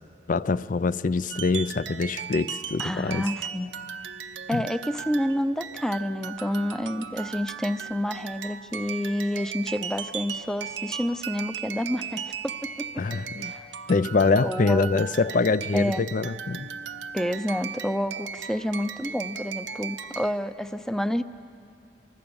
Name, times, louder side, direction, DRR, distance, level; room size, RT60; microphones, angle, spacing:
voice 1, 0.3-3.3 4.5-4.6 13.0-13.5 13.9-16.7, left 4 dB, 50° left, 17 dB, 0.5 m, -24 dB
sound 1, 1.3-20.4, right 7 dB, 85° right, 0.8 m, -37 dB
voice 2, 2.8-3.7 4.5-12.3 12.6-13.1 13.4-13.7 14.4-15.0 15.7-16.0 17.1-21.2, equal, 5° left, 12 dB, 0.6 m, -29 dB
25.0 x 24.0 x 7.1 m, 2.6 s
head